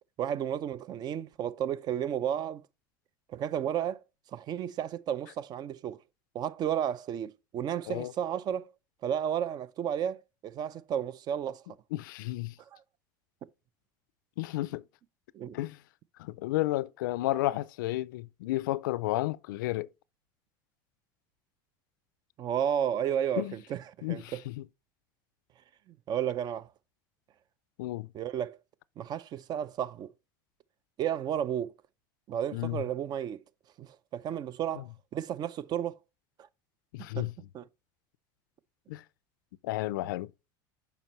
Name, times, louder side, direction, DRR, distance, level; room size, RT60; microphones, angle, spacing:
voice 1, 0.2-2.6 3.3-4.0 4.3-6.0 6.3-8.7 9.0-11.6 15.3-15.6 22.4-24.4 26.1-26.7 28.1-28.6 29.0-30.1 31.0-31.7 32.3-33.4 33.8-34.9 35.1-36.0 37.0-37.3 37.5-37.7, right 9 dB, 40° right, 0.5 m, -32 dB
voice 2, 11.9-12.5 14.4-14.8 15.5-15.8 16.2-19.9 23.4-23.6 24.0-24.6 27.8-28.1 32.5-32.8 34.8-34.9 36.9-37.3 38.9-39.0 39.6-40.3, left 17 dB, 85° left, 0.4 m, -32 dB
7.0 x 5.2 x 3.0 m
supercardioid pair, 110°, 10 cm